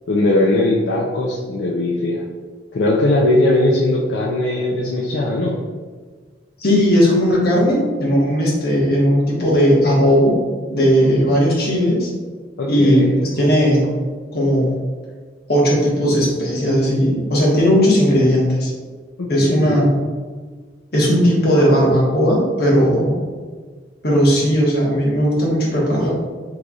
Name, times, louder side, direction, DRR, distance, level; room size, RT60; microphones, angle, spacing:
voice 1, 0.1-2.2 2.7-5.6 12.6-13.3 19.2-19.8, left 1 dB, 80° left, -3 dB, 0.4 m, -19 dB
voice 2, 6.6-10.4 10.7-12.1 12.7-13.9 14.3-14.7 15.5-18.7 19.3-20.0 20.9-23.2 24.0-26.1, equal, 60° left, -4 dB, 1.1 m, -16 dB
3.8 x 3.1 x 2.3 m, 1.5 s
head